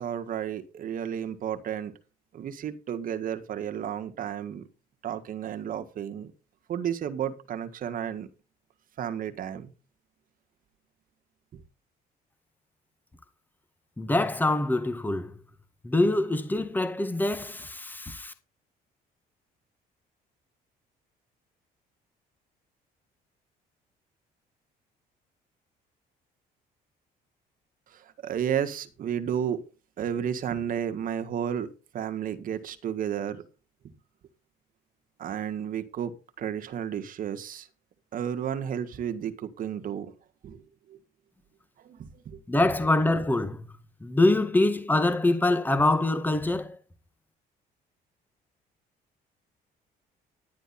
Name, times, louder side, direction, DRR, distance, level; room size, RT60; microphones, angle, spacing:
voice 1, 0.0-1.9 2.3-4.7 5.0-6.3 6.7-8.3 9.0-9.7 27.9-29.6 30.0-31.7 31.9-33.4 35.2-37.7 38.1-40.1 40.4-40.6 40.9-41.0 41.8-42.4, right 9 dB, 55° right, 1.6 m, -32 dB
voice 2, 14.0-15.3 15.8-18.3 42.5-43.6 44.0-46.8, left 2 dB, 10° left, 1.8 m, -24 dB
11.0 x 10.0 x 4.2 m
cardioid pair, 110°, 17 cm